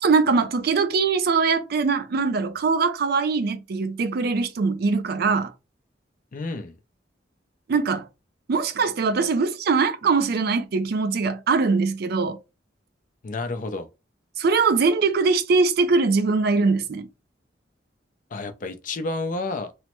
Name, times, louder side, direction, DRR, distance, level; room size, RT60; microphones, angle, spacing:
voice 1, 0.0-5.5 7.7-8.1 8.5-12.4 14.4-17.1, right 4 dB, 60° right, 0.4 m, -22 dB
voice 2, 6.3-6.8 13.2-13.9 18.3-19.7, left 3 dB, 45° left, 0.5 m, -30 dB
3.1 x 2.0 x 3.0 m
head